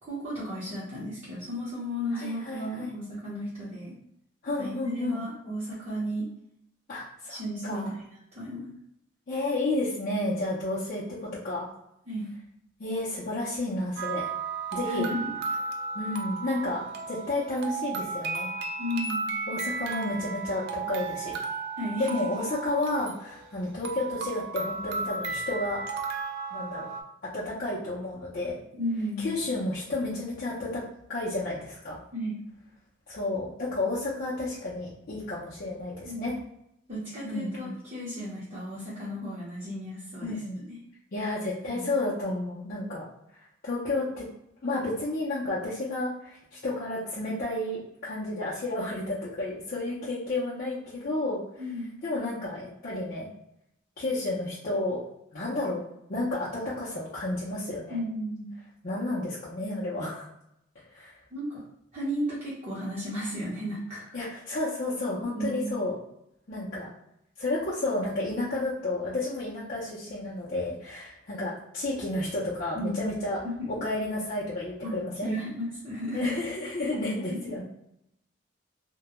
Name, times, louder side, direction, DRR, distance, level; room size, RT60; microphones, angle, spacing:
voice 1, 0.0-4.0 4.6-6.3 7.3-8.0 8.3-8.7 12.1-12.3 14.8-15.3 18.8-19.3 21.8-22.2 28.7-29.4 32.1-32.4 36.0-36.4 36.9-40.4 40.6-40.8 41.7-41.8 51.6-51.9 57.9-58.5 61.3-61.6 61.9-64.2 65.2-65.7 72.7-73.0 73.4-73.7 74.8-74.9 75.2-76.3 77.3-77.5, equal, 35° right, -11 dB, 0.7 m, -34 dB
voice 2, 2.1-2.9 4.4-5.2 6.9-7.9 9.3-11.7 12.8-14.3 14.7-15.1 15.9-18.5 19.5-21.4 22.0-25.8 26.5-26.9 27.2-28.6 29.2-30.8 31.1-32.0 33.1-36.3 37.2-37.7 40.2-40.6 41.1-43.1 43.6-44.3 44.6-51.4 52.0-53.3 54.0-55.0 55.3-58.0 58.8-60.3 60.9-61.1 64.1-65.9 66.5-66.9 67.4-73.4 73.8-75.3 76.1-77.6, left 2 dB, 45° left, -8 dB, 0.5 m, -31 dB
sound 1, 14.0-27.0, right 4 dB, 55° right, 0.3 m, -34 dB
2.2 x 2.0 x 2.9 m, 0.78 s
head